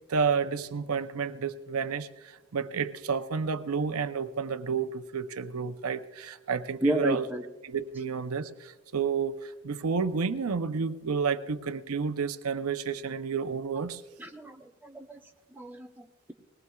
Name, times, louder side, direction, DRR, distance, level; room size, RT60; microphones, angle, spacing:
voice 1, 0.1-7.3 7.6-14.0, right 5 dB, 90° right, 10 dB, 0.6 m, -30 dB
voice 2, 6.8-7.4 14.2-15.2 15.6-16.3, right 1 dB, 10° right, 2 dB, 0.7 m, -32 dB
20.5 x 18.5 x 2.3 m, 1.2 s
head